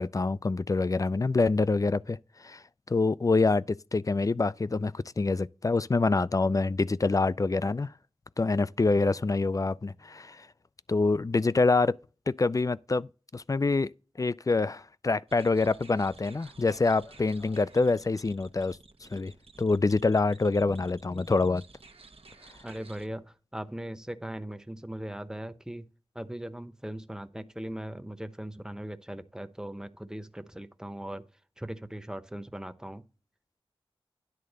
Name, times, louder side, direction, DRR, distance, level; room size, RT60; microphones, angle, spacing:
voice 1, 0.0-2.6 2.9-7.9 8.4-10.5 10.9-12.0 12.3-13.9 14.2-19.3 19.6-21.6, left 3 dB, 35° left, 0.4 m, -26 dB
sound 1, 15.3-23.1, right 3 dB, 75° right, 1.0 m, -54 dB
voice 2, 22.6-25.8 26.1-31.2 31.6-33.0, right 1 dB, 5° right, 0.8 m, -39 dB
10.5 x 3.7 x 6.6 m
wide cardioid pair, 55°, 10 cm